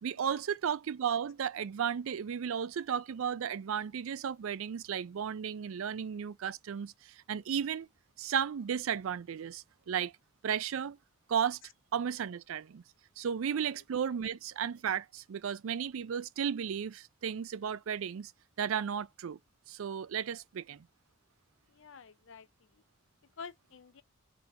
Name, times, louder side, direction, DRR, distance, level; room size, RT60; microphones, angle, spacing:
voice 1, 0.0-7.9 8.2-10.1 10.4-11.0 11.3-11.6 11.9-12.8 13.2-18.3 18.6-19.4 19.7-20.9, right 8 dB, 80° right, 0.4 m, -34 dB
voice 2, 21.7-22.5 22.7-22.8 23.4-24.0, left 5 dB, 65° left, 0.5 m, -50 dB
4.0 x 2.9 x 3.2 m
head